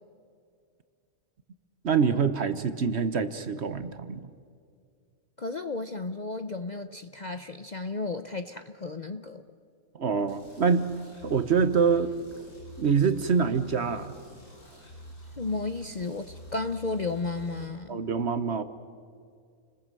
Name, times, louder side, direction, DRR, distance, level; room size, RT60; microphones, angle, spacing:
voice 1, 1.8-4.3 9.9-10.9 11.2-12.1 12.8-14.1 17.9-18.6, right 6 dB, 50° right, 11 dB, 1.2 m, -25 dB
voice 2, 5.4-9.4 15.4-18.1, left 3 dB, 40° left, 8 dB, 0.7 m, -33 dB
sound 1, 10.3-17.7, right 1 dB, 90° left, 6.6 m, -46 dB
30.0 x 20.5 x 7.6 m, 2.2 s
omnidirectional pair, 1.5 m